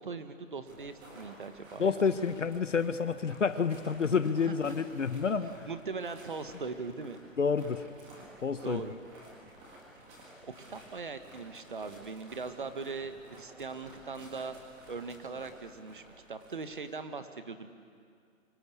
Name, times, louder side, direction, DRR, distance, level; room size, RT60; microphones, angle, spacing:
voice 1, 0.0-1.9 4.4-4.5 5.7-7.2 8.6-8.9 10.4-14.6 14.9-16.0 16.3-17.7, right 4 dB, 40° right, 9 dB, 1.5 m, -40 dB
sound 1, 0.7-17.0, right 1 dB, 5° right, 1.7 m, -54 dB
voice 2, 1.8-5.7 7.4-7.8 8.4-8.8, left 5 dB, 65° left, 11 dB, 1.3 m, -29 dB
27.0 x 24.5 x 8.5 m, 2.2 s
hypercardioid pair, 175°, 40 cm